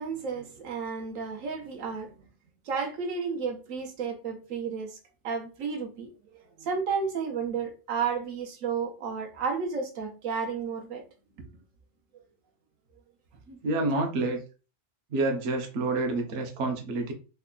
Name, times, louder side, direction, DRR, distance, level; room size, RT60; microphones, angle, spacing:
voice 1, 0.0-2.2 2.7-4.9 5.2-6.1 6.6-11.0 13.9-14.0, right 5 dB, 85° right, 1.1 m, -32 dB
voice 2, 13.5-14.4 15.1-17.1, right 2 dB, 65° right, 1.0 m, -28 dB
3.3 x 2.2 x 3.7 m
omnidirectional pair, 1.3 m